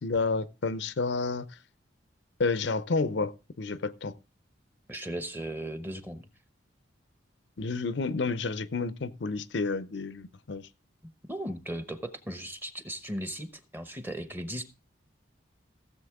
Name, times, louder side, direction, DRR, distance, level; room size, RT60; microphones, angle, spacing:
voice 1, 0.0-1.5 2.4-4.1 7.6-10.7, left 4 dB, 70° left, 0.6 m, -30 dB
voice 2, 4.9-6.3 11.0-14.6, right 1 dB, 10° right, 0.9 m, -37 dB
16.0 x 7.4 x 3.5 m
head